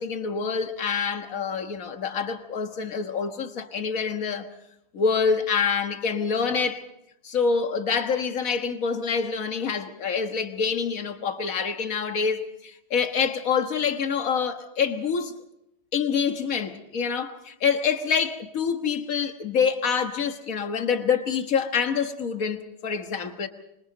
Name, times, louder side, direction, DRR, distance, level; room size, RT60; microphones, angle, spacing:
voice 1, 0.0-4.5 4.9-6.8 7.2-15.3 15.9-23.5, left 6 dB, 50° left, 1.7 m, -26 dB
26.0 x 26.0 x 4.0 m
omnidirectional pair, 2.0 m